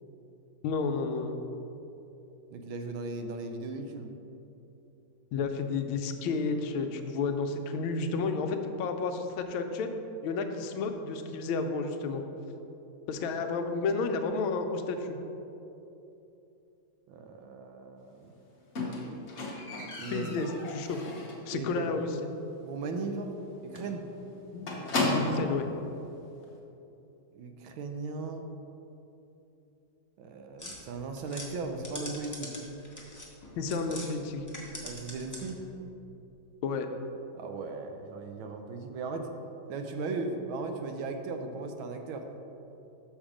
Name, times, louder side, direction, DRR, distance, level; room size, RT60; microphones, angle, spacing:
voice 1, 0.6-1.4 5.3-9.9 10.2-12.2 13.1-15.2 20.1-21.0 21.5-22.1 24.5-24.7 25.1-25.7 33.6-34.4 36.6-36.9, left 4 dB, 80° left, 6 dB, 1.4 m, -31 dB
voice 2, 2.5-4.1 17.1-18.3 20.0-20.6 21.5-21.9 22.6-23.4 23.6-24.0 27.3-28.4 30.2-32.5 34.8-35.6 37.3-39.3 39.7-42.3, right 3 dB, 80° right, 5 dB, 1.4 m, -37 dB
Squeak, 18.8-21.5 21.9-22.3 22.5-22.6 23.0-23.1 23.4-23.5 23.8-25.6 26.4-26.5, left 2 dB, 40° left, 1.1 m, -34 dB
sound 1, 30.6-34.1 34.4-35.7, left 1 dB, 20° left, 0.5 m, -43 dB
6.4 x 5.9 x 5.0 m, 2.9 s
omnidirectional pair, 2.2 m